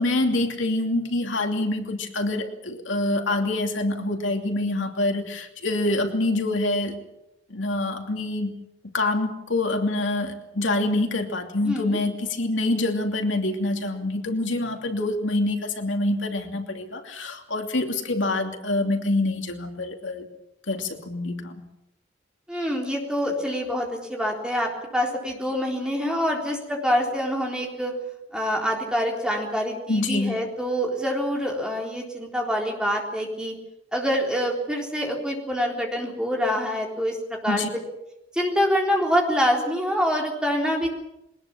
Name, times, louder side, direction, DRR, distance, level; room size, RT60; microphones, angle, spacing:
voice 1, 0.0-6.9 7.5-8.5 8.9-20.3 20.7-21.6 29.9-30.4 37.5-37.7, left 2 dB, 75° left, 4 dB, 2.8 m, -26 dB
voice 2, 11.6-12.0 22.5-27.9 28.3-33.5 33.9-37.6 38.3-40.9, equal, 5° right, -1 dB, 3.9 m, -26 dB
22.0 x 20.0 x 7.3 m, 0.87 s
head